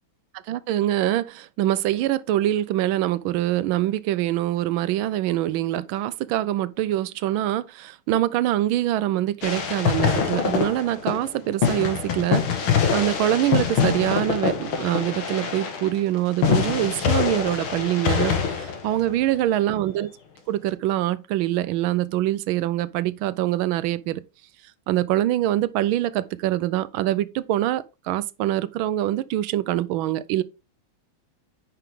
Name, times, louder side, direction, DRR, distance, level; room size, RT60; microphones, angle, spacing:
voice 1, 0.5-20.1 20.5-24.2 24.9-30.4, right 14 dB, 80° right, 1.3 m, -24 dB
sound 1, 9.4-11.3 11.6-19.3, left 7 dB, 80° left, 2.4 m, -24 dB
9.2 x 5.8 x 3.6 m
omnidirectional pair, 2.3 m